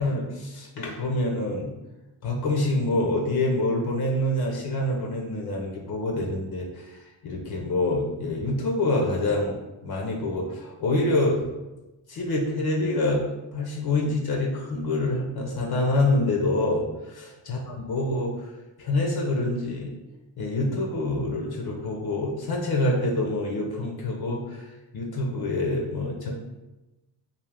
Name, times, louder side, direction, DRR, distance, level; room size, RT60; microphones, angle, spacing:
voice 1, 0.0-1.7 2.2-7.0 7.2-9.6 9.8-11.4 12.1-13.2 13.5-16.8 17.5-18.5 18.8-19.9 20.4-24.7 24.9-26.4, left 2 dB, 55° left, -1 dB, 0.7 m, -26 dB
2.5 x 2.4 x 3.4 m, 1.0 s
supercardioid pair, 55°, 46 cm